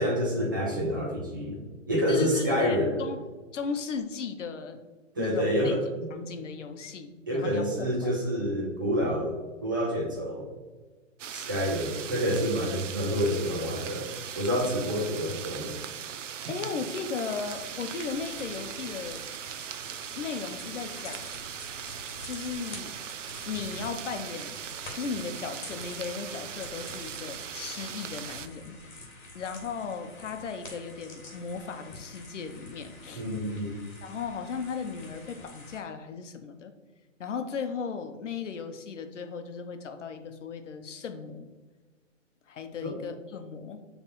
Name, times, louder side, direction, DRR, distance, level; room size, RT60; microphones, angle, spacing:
voice 1, 0.0-2.9 5.2-6.1 7.3-9.3 9.6-10.5 11.3-14.1 14.3-15.8 33.1-33.8 42.8-42.9, equal, 15° right, -3 dB, 0.6 m, -28 dB
voice 2, 2.1-3.2 3.5-4.8 5.2-5.8 6.1-7.7 8.0-8.2 16.4-19.2 20.1-21.3 22.2-22.9 23.5-24.6 24.9-29.1 29.3-33.2 34.0-36.7 37.2-41.5 42.5-43.8, left 5 dB, 65° left, 8 dB, 0.9 m, -36 dB
sound 1, 11.2-28.5, right 8 dB, 70° right, 0.6 m, -39 dB
sound 2, 17.2-35.8, left 2 dB, 40° left, 1.6 m, -48 dB
7.5 x 3.4 x 4.2 m, 1.3 s
hypercardioid pair, 170°, 39 cm